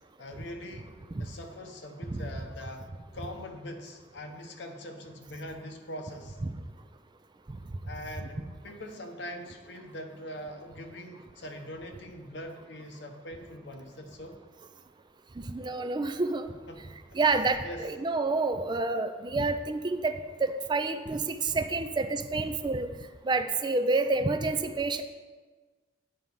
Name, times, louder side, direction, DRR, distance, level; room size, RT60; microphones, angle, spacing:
voice 1, 0.2-0.9 1.2-2.9 3.1-6.4 7.8-14.4 16.7-17.2 17.6-17.9, left 1 dB, 70° left, 4 dB, 1.0 m, -42 dB
voice 2, 15.4-16.5 17.1-20.1 20.4-22.9 23.2-25.0, right 3 dB, 25° right, 8 dB, 0.4 m, -28 dB
9.0 x 4.7 x 5.5 m, 1.3 s
head